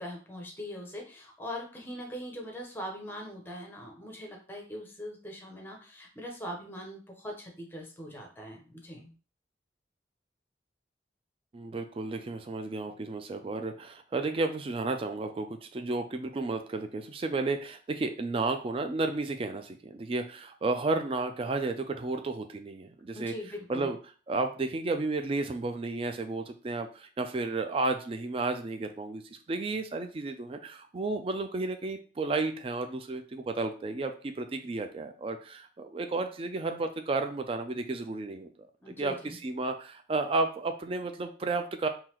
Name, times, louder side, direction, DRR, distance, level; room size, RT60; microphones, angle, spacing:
voice 1, 0.0-9.1 23.1-23.9 38.8-39.1, equal, 10° left, 1 dB, 0.8 m, -41 dB
voice 2, 11.5-23.3 23.7-24.0 24.3-29.2 29.5-38.5 38.9-41.9, right 3 dB, 30° right, 7 dB, 0.3 m, -32 dB
3.9 x 2.7 x 2.9 m, 0.38 s
head